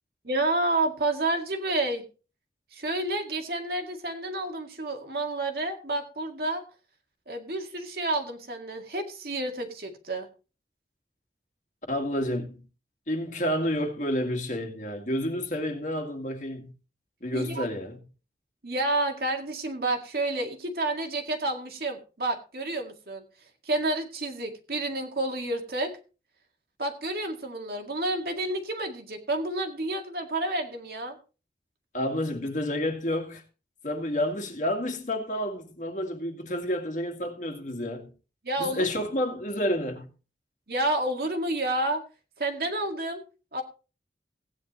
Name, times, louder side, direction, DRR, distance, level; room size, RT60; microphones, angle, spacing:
voice 1, 0.2-2.0 2.7-6.6 7.3-10.3 17.3-17.7 18.6-23.2 23.6-25.9 26.8-31.2 38.4-38.9 40.7-42.0 42.4-43.2 43.5-43.6, right 2 dB, 60° right, 2.1 m, -30 dB
voice 2, 11.9-12.6 13.1-16.7 17.2-18.0 31.9-33.4 33.8-38.1 38.6-40.1, left 1 dB, 45° left, 2.0 m, -30 dB
16.0 x 9.9 x 3.1 m
head